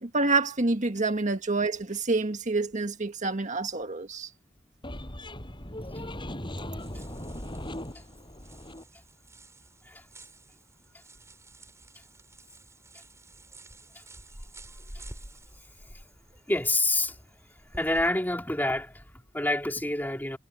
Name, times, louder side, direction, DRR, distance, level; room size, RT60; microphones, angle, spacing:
voice 1, 0.0-4.3, right 3 dB, 40° right, 1.7 m, -27 dB
sound 1, 4.8-8.8, left 1 dB, 25° left, 7.4 m, -38 dB
sound 2, 6.8-18.1, right 1 dB, 15° right, 7.9 m, -50 dB
voice 2, 16.5-17.3 17.6-20.4, left 1 dB, 10° left, 3.4 m, -28 dB
head